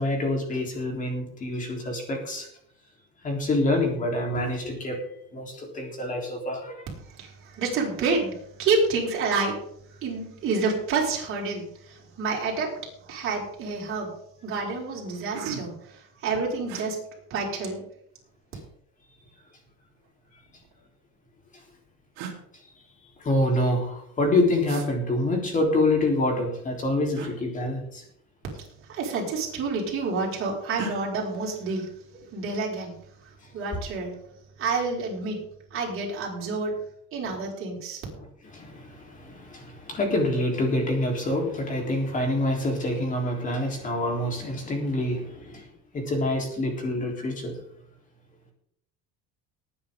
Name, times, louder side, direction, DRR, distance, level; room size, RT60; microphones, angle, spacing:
voice 1, 0.0-2.5 3.2-5.0 5.3-6.8 23.2-28.0 38.1-38.3 38.5-45.6 45.9-47.6, left 1 dB, 25° left, 1 dB, 3.8 m, -26 dB
voice 2, 7.2-9.6 10.0-12.7 13.0-14.1 14.4-17.0 17.3-17.8 28.9-31.9 32.3-33.0 33.5-34.2 34.6-35.4 35.7-36.7 37.1-38.0, right 4 dB, 40° right, -3 dB, 5.4 m, -28 dB
sound 1, 13.0-13.2 13.6-14.0 14.6-14.7 15.0-15.9 16.7-16.9 18.1-18.8 19.9-20.8 21.7-21.8 22.1-22.4 24.6-24.9 27.1-27.3 28.7-28.9 29.2-29.8 30.7-31.0, right 6 dB, 55° right, 3.6 m, -38 dB
19.0 x 9.7 x 3.8 m, 0.70 s
cardioid pair, 155°, 33 cm